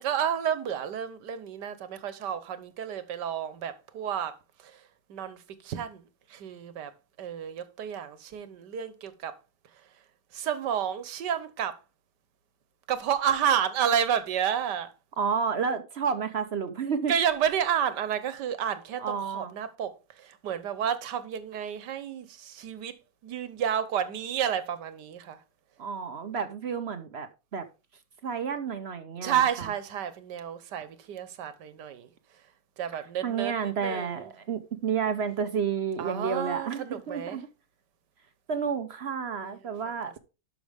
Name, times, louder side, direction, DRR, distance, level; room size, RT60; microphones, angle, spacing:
voice 1, 0.0-4.3 5.1-5.4 5.6-6.0 6.3-6.9 7.2-9.3 10.3-11.8 12.9-14.9 17.1-22.9 23.2-25.4 29.2-32.1 32.8-33.5 33.8-34.2 36.0-37.4 39.4-39.6, right 9 dB, 75° right, 1.6 m, -30 dB
voice 2, 15.2-17.1 19.0-19.5 25.8-27.7 28.2-29.7 32.9-37.5 38.5-40.2, right 6 dB, 50° right, 0.8 m, -31 dB
11.5 x 6.1 x 3.5 m
omnidirectional pair, 1.9 m